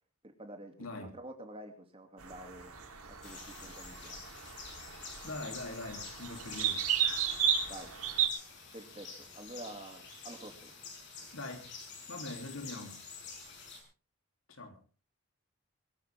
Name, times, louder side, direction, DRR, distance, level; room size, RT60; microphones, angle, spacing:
voice 1, 0.2-2.7 3.1-4.3 7.7-7.9 8.7-9.1 9.3-10.7, right 1 dB, 25° right, 2.6 m, -48 dB
voice 2, 0.8-1.1 5.2-6.9 11.3-11.7 12.1-13.0 14.5-14.8, left 2 dB, 75° left, 3.1 m, -42 dB
sound 1, 2.2-8.3, right 8 dB, 80° right, 3.5 m, -34 dB
sound 2, 3.2-13.8, left 4 dB, 55° left, 5.9 m, -48 dB
22.5 x 14.0 x 3.6 m
head